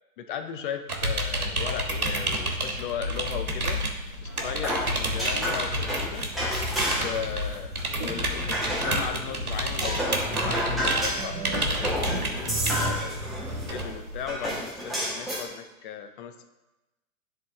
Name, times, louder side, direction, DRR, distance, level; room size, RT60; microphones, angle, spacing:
voice 1, 0.2-3.8 4.2-6.3 6.9-16.5, left 8 dB, 35° left, 7 dB, 0.6 m, -37 dB
sound 1, 0.9-14.6, right 1 dB, 80° right, 1.3 m, -30 dB
sound 2, 4.3-7.3 7.5-9.2 9.6-13.9 14.3-15.4, equal, ahead, 1.2 m, -31 dB
sound 3, 5.4-13.7, right 2 dB, 35° right, 1.5 m, -38 dB
11.0 x 3.6 x 3.5 m, 1.0 s
figure-of-eight pair, 100°, 44 cm